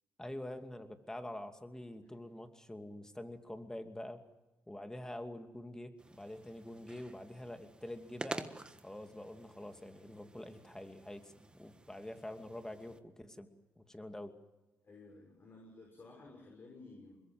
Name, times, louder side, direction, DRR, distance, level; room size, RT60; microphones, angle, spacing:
voice 1, 0.2-4.2 4.7-8.5 8.8-13.5 13.8-14.3, left 1 dB, 10° left, 7 dB, 2.6 m, -46 dB
sound 1, 6.0-13.0, right 2 dB, 15° right, 1.5 m, -49 dB
voice 2, 14.8-17.2, left 3 dB, 40° left, 1 dB, 6.3 m, -54 dB
24.5 x 21.5 x 7.8 m, 1.0 s
supercardioid pair, 70°, 6 cm